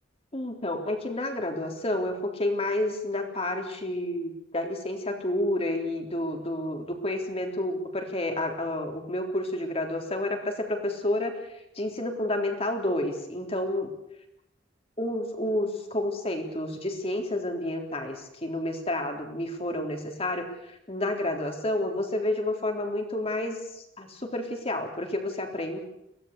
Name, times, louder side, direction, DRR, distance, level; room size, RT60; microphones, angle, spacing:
voice 1, 0.3-13.9 15.0-25.8, left 1 dB, 30° left, 4 dB, 3.7 m, -30 dB
23.5 x 17.5 x 8.3 m, 0.83 s
head